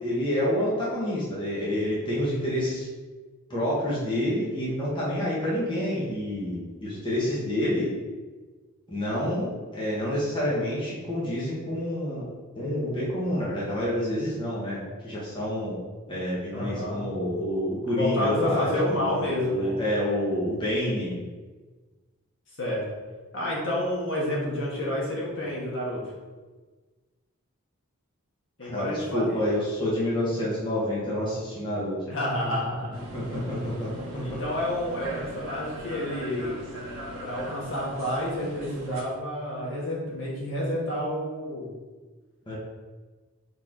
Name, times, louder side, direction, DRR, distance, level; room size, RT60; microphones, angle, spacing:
voice 1, 0.0-2.9 3.5-7.9 8.9-12.3 12.5-15.8 16.1-19.2 19.4-21.2 28.6-32.0 33.1-34.4 42.5-42.6, left 1 dB, 20° left, -7 dB, 1.4 m, -28 dB
voice 2, 16.5-17.0 17.9-19.7 22.6-22.8 23.3-26.0 28.6-29.4 32.1-32.9 34.2-36.6 37.2-41.7, left 1 dB, 60° left, -5 dB, 1.7 m, -29 dB
sound 1, 32.9-39.0, right 1 dB, 65° right, 1.7 m, -40 dB
4.7 x 4.4 x 4.6 m, 1.3 s
head